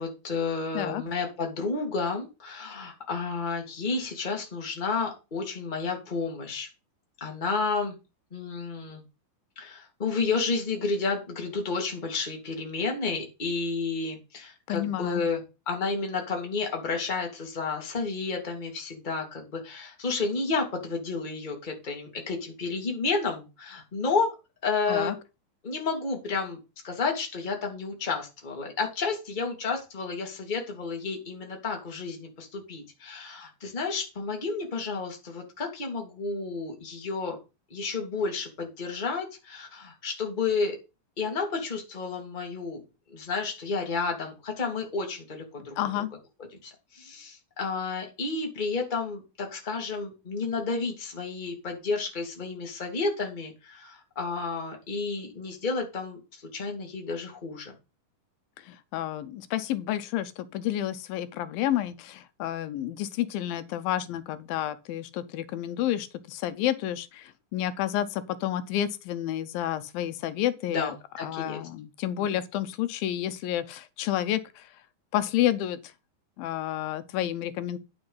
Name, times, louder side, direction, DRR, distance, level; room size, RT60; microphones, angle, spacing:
voice 1, 0.0-6.7 7.2-8.0 8.3-9.0 9.6-24.3 24.6-25.2 25.6-26.6 26.8-37.4 37.7-40.8 41.2-42.8 43.1-45.7 46.6-56.2 56.5-57.7 70.7-71.6 72.2-72.3, left 4 dB, 15° left, 1.8 m, -31 dB
voice 2, 14.7-15.2 24.9-25.1 45.8-46.1 58.7-70.9 71.2-74.7 75.1-75.8 76.4-77.8, left 12 dB, 85° left, 2.5 m, -30 dB
9.7 x 5.7 x 5.5 m
omnidirectional pair, 4.1 m